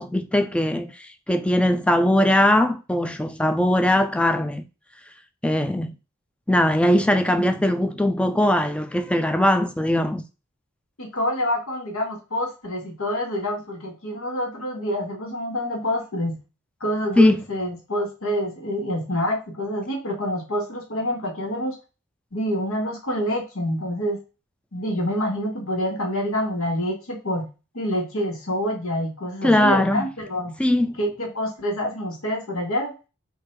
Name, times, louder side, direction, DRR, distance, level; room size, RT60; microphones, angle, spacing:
voice 1, 0.0-4.6 5.4-5.9 6.5-10.2 17.2-17.4 29.4-30.1 30.6-30.9, left 1 dB, 5° left, 0.3 m, -20 dB
voice 2, 11.0-16.4 16.8-21.8 22.3-24.2 24.7-27.5 27.7-30.6 31.0-32.9, equal, 85° left, 1.5 m, -27 dB
3.8 x 2.7 x 4.4 m
head